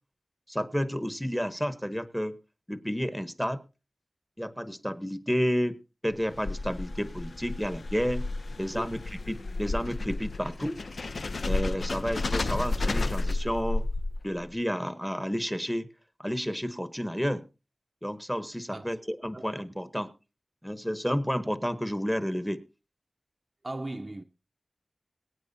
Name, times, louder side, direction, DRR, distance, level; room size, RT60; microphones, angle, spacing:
voice 1, 0.5-2.4 2.7-3.6 4.4-5.8 6.0-8.2 8.6-9.0 9.3-10.8 11.5-13.8 14.2-15.9 16.2-17.5 18.0-20.1 20.6-22.6, equal, 5° left, 1.0 m, -31 dB
sound 1, 6.1-14.4, left 2 dB, 75° left, 0.6 m, -32 dB
voice 2, 19.3-19.6 23.6-24.2, right 2 dB, 35° right, 0.6 m, -38 dB
22.5 x 9.1 x 2.7 m
wide cardioid pair, 85°, 0 cm